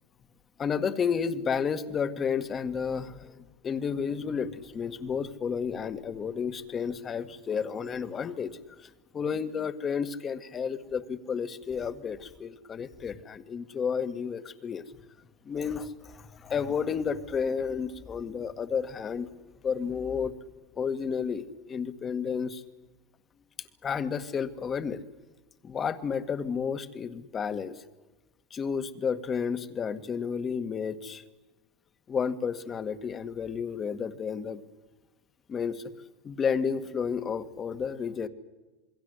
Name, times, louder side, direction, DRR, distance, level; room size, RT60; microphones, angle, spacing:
voice 1, 0.6-14.8 15.5-19.3 19.6-20.3 20.8-22.6 23.8-25.0 25.6-27.8 28.5-31.2 32.1-34.6 35.5-35.8 36.2-38.3, left 6 dB, 25° left, 11 dB, 1.8 m, -31 dB
27.5 x 21.5 x 8.1 m, 1.2 s
supercardioid pair, 125°, 0 cm